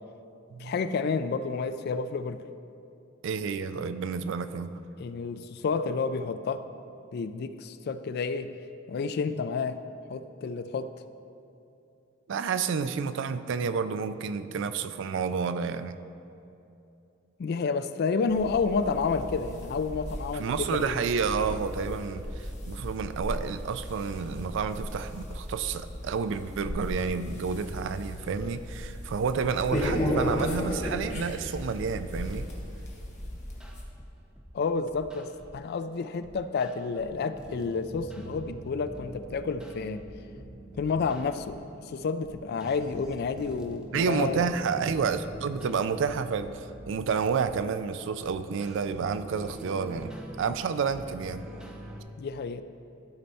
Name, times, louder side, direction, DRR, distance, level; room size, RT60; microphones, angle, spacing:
voice 1, 0.6-2.4 5.0-6.6 7.1-8.5 8.9-9.8 10.1-10.9 17.4-21.0 34.5-40.0 40.7-44.5 52.2-52.6, left 4 dB, 50° left, 11 dB, 0.3 m, -30 dB
voice 2, 3.2-4.7 12.3-16.0 20.3-32.5 43.9-50.1 50.4-51.5, right 5 dB, 65° right, 12 dB, 0.3 m, -30 dB
sound 1, 18.3-33.8, equal, 35° left, 1.2 m, -35 dB
sound 2, 33.2-34.5 34.9-35.6 36.2-52.0, right 1 dB, 5° right, 0.6 m, -45 dB
12.5 x 4.3 x 4.1 m, 2.8 s
head